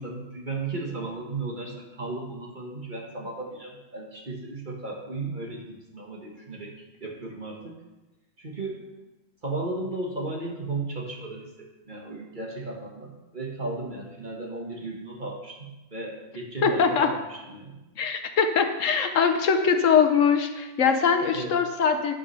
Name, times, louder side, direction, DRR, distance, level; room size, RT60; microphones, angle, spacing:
voice 1, 0.0-6.7 7.0-7.8 8.4-8.8 9.4-17.8 21.3-21.5, right 2 dB, 30° right, -1 dB, 1.4 m, -35 dB
voice 2, 16.6-17.1 18.0-22.1, left 6 dB, 55° left, 7 dB, 1.0 m, -22 dB
11.0 x 5.5 x 5.6 m, 1.0 s
omnidirectional pair, 1.9 m